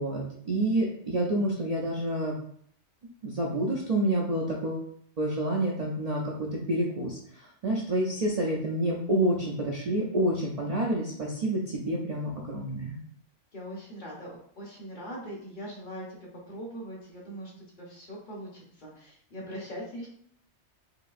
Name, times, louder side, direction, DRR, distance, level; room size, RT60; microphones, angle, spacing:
voice 1, 0.0-2.3 3.2-4.9 5.2-13.0, right 1 dB, 50° right, -2 dB, 0.5 m, -28 dB
voice 2, 13.5-17.5 17.8-20.1, equal, 45° left, -3 dB, 1.0 m, -41 dB
4.7 x 2.7 x 2.4 m, 0.65 s
omnidirectional pair, 1.2 m